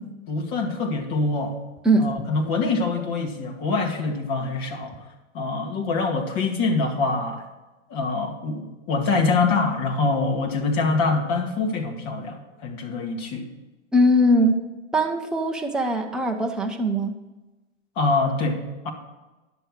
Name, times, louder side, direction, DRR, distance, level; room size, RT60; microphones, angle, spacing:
voice 1, 0.0-1.6 2.0-5.0 5.3-7.4 7.9-13.4 18.0-18.9, left 3 dB, 40° left, 2 dB, 2.2 m, -25 dB
voice 2, 13.9-14.6 14.9-17.1, equal, ahead, 2 dB, 0.3 m, -21 dB
11.0 x 7.0 x 6.4 m, 1.1 s
hypercardioid pair, 125°, 38 cm